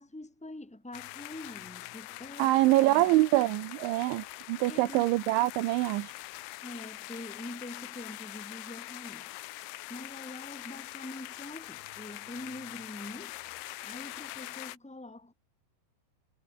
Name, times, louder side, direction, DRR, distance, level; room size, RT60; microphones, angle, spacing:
voice 1, 0.0-3.2 4.7-5.1 6.6-9.3 9.9-13.4 13.8-15.3, left 1 dB, ahead, 3.7 m, -44 dB
sound 1, 0.9-14.8, left 19 dB, 75° left, 3.0 m, -43 dB
voice 2, 2.4-6.1, right 18 dB, 75° right, 3.0 m, -25 dB
omnidirectional pair, 6.0 m